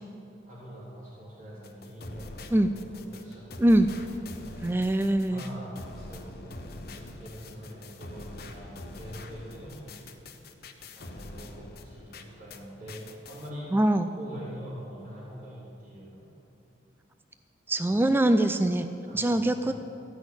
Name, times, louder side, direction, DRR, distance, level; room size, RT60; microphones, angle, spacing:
voice 1, 0.5-3.9 5.3-6.7 6.9-10.1 11.0-13.7 14.2-16.2 17.9-18.1 19.0-19.7, equal, 50° right, -9 dB, 3.6 m, -44 dB
sound 1, 1.6-12.6 12.9-13.5, left 2 dB, 60° left, 1.0 m, -44 dB
voice 2, 4.6-5.4 13.7-14.1 17.7-18.9 19.1-19.7, right 1 dB, 10° right, 9 dB, 0.3 m, -23 dB
15.0 x 6.2 x 9.5 m, 2.8 s
head